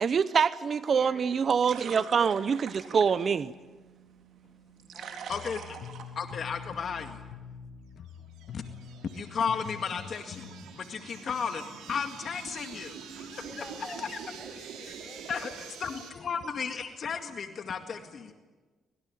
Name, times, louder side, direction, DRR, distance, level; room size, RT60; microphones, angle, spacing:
voice 1, 0.0-3.5, right 6 dB, 50° right, 15 dB, 0.8 m, -25 dB
voice 2, 0.9-2.2 4.9-5.4 13.4-14.1 14.4-16.4, left 1 dB, 10° left, 4 dB, 7.9 m, -49 dB
sound 1, 0.9-6.9, right 7 dB, 70° right, 3.9 m, -47 dB
sound 2, 5.3-10.6, left 8 dB, 65° left, 1.6 m, -45 dB
voice 3, 5.3-5.8 6.2-7.2 8.5-8.6 9.1-13.6 14.0-14.2 15.3-15.5 15.8-18.3, left 6 dB, 50° left, 6 dB, 2.0 m, -34 dB
sound 3, 8.1-16.1, right 6 dB, 90° right, 4.9 m, -46 dB
25.0 x 22.0 x 9.3 m, 1.3 s
cardioid pair, 90°, 0 cm